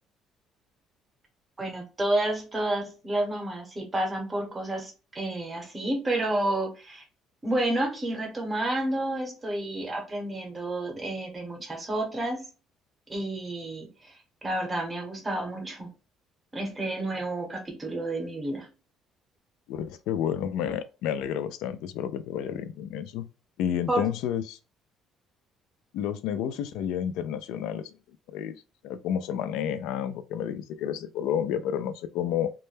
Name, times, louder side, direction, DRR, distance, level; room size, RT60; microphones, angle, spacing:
voice 1, 1.6-7.0 7.4-12.5 13.1-15.9 16.5-18.7 23.9-24.1, right 1 dB, 15° right, 0.7 m, -30 dB
voice 2, 19.7-23.3 23.6-24.6 25.9-27.9 28.3-28.6 28.8-32.5, left 9 dB, 90° left, 0.3 m, -30 dB
2.2 x 2.1 x 3.1 m
cardioid pair, 170°, 0 cm